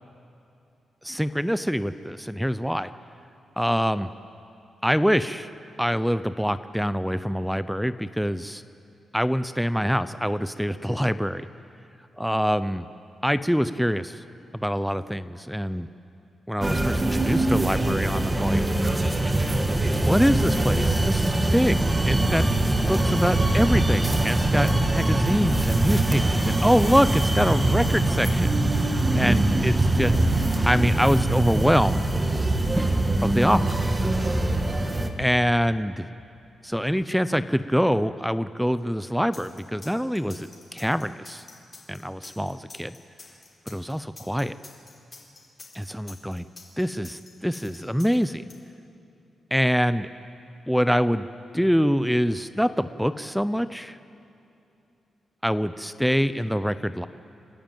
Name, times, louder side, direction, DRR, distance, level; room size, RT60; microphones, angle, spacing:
voice 1, 1.0-2.9 3.6-4.1 4.8-5.5 5.8-8.6 9.1-11.5 12.2-12.9 13.2-14.2 14.5-15.9 16.5-18.7 20.0-22.5 22.9-28.5 29.1-30.1 30.7-32.0 33.2-33.7 35.2-36.1 36.6-41.4 41.9-43.0 43.7-44.5 45.7-46.4 46.8-48.4 49.5-50.1 50.7-51.3 51.5-54.0 55.4-57.1, equal, ahead, 14 dB, 0.4 m, -25 dB
sound 1, 16.6-35.1, right 2 dB, 20° right, 1.5 m, -23 dB
sound 2, 39.3-48.5, left 3 dB, 35° left, 3.9 m, -47 dB
29.0 x 10.5 x 9.0 m, 2.8 s
cardioid pair, 100°, 0 cm